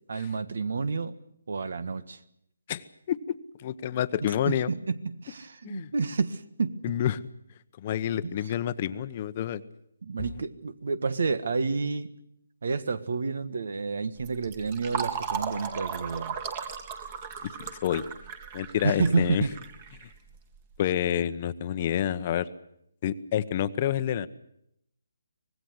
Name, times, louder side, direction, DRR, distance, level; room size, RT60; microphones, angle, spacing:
voice 1, 0.1-1.2 1.5-2.2 4.4-6.8 8.2-8.3 10.0-12.1 12.6-16.4 18.8-19.5, right 4 dB, 65° right, 15 dB, 1.6 m, -29 dB
voice 2, 2.7-3.2 3.6-4.7 5.6-5.9 6.8-7.2 7.8-9.6 17.4-17.5 17.8-18.0 18.5-19.4 20.8-22.5 23.0-24.3, left 10 dB, 35° left, 13 dB, 1.0 m, -28 dB
Fill (with liquid), 14.2-20.6, right 7 dB, 30° right, 2.3 m, -36 dB
25.0 x 19.0 x 8.1 m, 0.75 s
hypercardioid pair, 160°, 0 cm